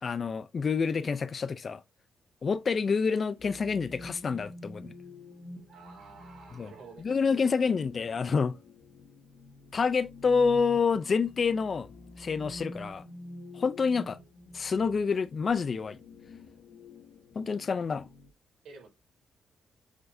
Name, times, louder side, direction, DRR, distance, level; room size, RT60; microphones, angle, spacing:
voice 1, 0.0-1.8 2.4-4.9 6.5-6.7 7.0-8.6 9.7-11.9 12.2-13.0 13.5-14.2 14.5-16.0 17.3-18.1, left 5 dB, 35° left, 0.4 m, -28 dB
Bird, 2.4-2.7 3.2-3.7 4.7-4.8 5.0-5.1 5.3-5.4 5.7-7.4 8.0-8.1, right 4 dB, 45° right, 3.4 m, -57 dB
sound 1, 3.4-18.3, left 2 dB, 55° left, 1.7 m, -48 dB
voice 2, 5.7-7.0 18.6-18.9, right 4 dB, 85° right, 4.7 m, -50 dB
7.3 x 6.2 x 2.6 m
wide cardioid pair, 165°, 0 cm